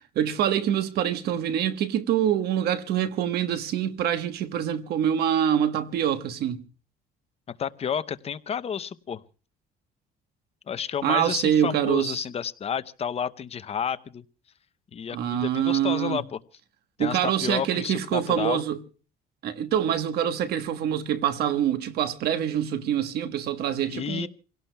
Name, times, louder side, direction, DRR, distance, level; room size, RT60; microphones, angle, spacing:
voice 1, 0.1-6.7 11.0-12.2 15.1-16.2 17.0-18.8 19.4-24.3, right 10 dB, 70° right, 1.2 m, -25 dB
voice 2, 7.6-9.2 10.7-14.2 14.9-16.4 17.0-18.6 23.8-24.3, left 8 dB, 35° left, 0.7 m, -31 dB
28.0 x 17.0 x 2.2 m
cardioid pair, 110°, 17 cm